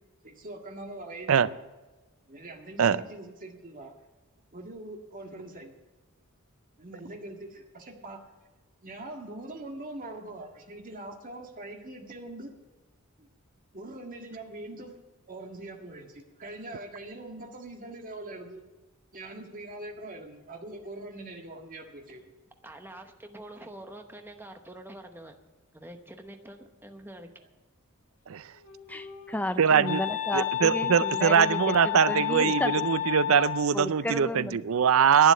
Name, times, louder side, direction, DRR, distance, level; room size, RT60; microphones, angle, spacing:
voice 1, 0.2-1.6 2.3-3.9 4.5-5.7 6.8-8.2 8.8-12.5 13.2-13.3 13.7-14.9 15.3-18.6 19.1-22.3, right 2 dB, 40° right, 2 dB, 1.8 m, -42 dB
voice 2, 22.6-25.4 25.7-27.3, right 1 dB, 10° right, 5 dB, 0.9 m, -46 dB
Wind instrument woodwind instrument, 28.4-33.9, left 11 dB, 70° left, 1.7 m, -32 dB
voice 3, 28.9-32.9 33.7-34.6, left 1 dB, 5° left, 11 dB, 0.5 m, -33 dB
voice 4, 29.6-30.0 30.3-35.3, right 7 dB, 65° right, 17 dB, 0.5 m, -22 dB
11.5 x 9.6 x 8.2 m, 1.2 s
head